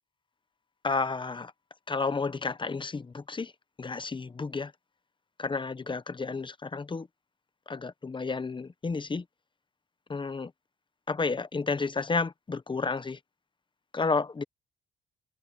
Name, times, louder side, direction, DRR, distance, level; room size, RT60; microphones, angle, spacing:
voice 1, 0.8-1.5 1.9-3.5 3.8-4.7 5.4-7.1 7.7-9.2 10.1-10.5 11.1-13.2 13.9-14.4, left 4 dB, 25° left, 0.9 m, -31 dB
cardioid pair, 90°, 20 cm